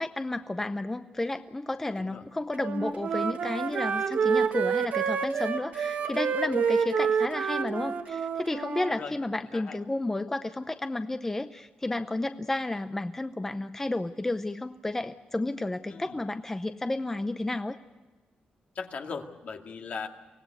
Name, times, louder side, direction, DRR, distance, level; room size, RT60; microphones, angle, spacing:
voice 1, 0.0-17.8, left 2 dB, 15° left, 9 dB, 0.7 m, -32 dB
Wind instrument woodwind instrument, 2.6-9.0, right 6 dB, 65° right, 1.7 m, -28 dB
voice 2, 8.9-9.8 15.9-16.2 18.8-20.1, left 5 dB, 60° left, 4 dB, 2.2 m, -39 dB
24.5 x 18.0 x 8.2 m, 1.3 s
cardioid pair, 120°, 3 cm